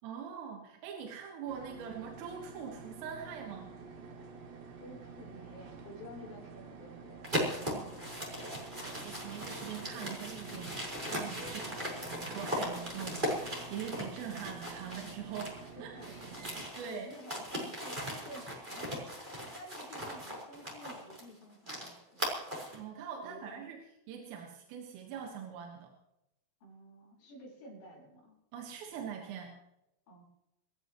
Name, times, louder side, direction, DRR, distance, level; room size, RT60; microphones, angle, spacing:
voice 1, 0.0-3.8 7.6-8.0 8.8-10.8 11.1-15.9 16.8-17.1 22.7-23.8 24.1-25.9 28.5-29.6, right 7 dB, 85° right, 2 dB, 4.2 m, -43 dB
sound 1, 1.5-16.7, right 4 dB, 60° right, 4.2 m, -49 dB
voice 2, 4.8-8.0 15.7-19.0 19.5-22.3 23.2-23.8 26.6-28.4 30.1-30.2, equal, 70° left, -3 dB, 7.0 m, -52 dB
sound 2, 7.2-15.7 16.0-22.8, equal, 10° right, 4.2 m, -39 dB
27.0 x 13.5 x 3.1 m, 0.89 s
omnidirectional pair, 5.7 m